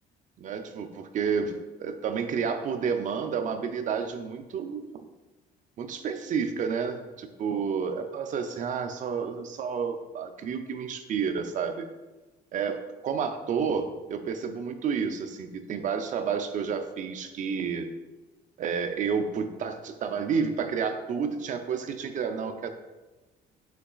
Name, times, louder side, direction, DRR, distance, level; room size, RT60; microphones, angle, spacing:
voice 1, 0.4-5.0 5.8-11.9 12.5-17.9 18.6-22.7, right 6 dB, 50° right, 7 dB, 0.5 m, -30 dB
5.7 x 3.9 x 2.4 m, 1.2 s
cardioid pair, 110°, 17 cm